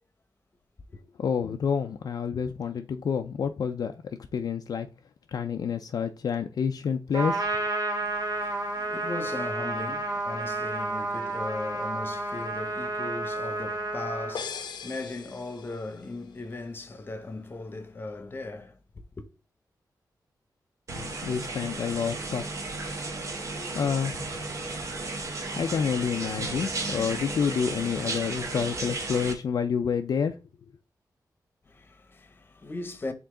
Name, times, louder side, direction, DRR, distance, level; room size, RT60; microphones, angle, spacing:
voice 1, 1.2-3.9 4.3-4.9 5.3-7.5 20.9-22.4 23.6-24.3 25.6-30.3, left 7 dB, 60° left, 0.4 m, -28 dB
Trumpet, 7.1-14.4, right 2 dB, 60° right, 1.6 m, -31 dB
voice 2, 8.0-18.8 19.2-19.3 31.7-33.1, left 2 dB, 30° left, 0.9 m, -38 dB
sound 1, 14.3-16.1, left 6 dB, 90° left, 0.7 m, -39 dB
sound 2, 20.9-29.3, right 3 dB, 45° right, 1.2 m, -34 dB
6.9 x 3.7 x 3.7 m
wide cardioid pair, 175°, 7 cm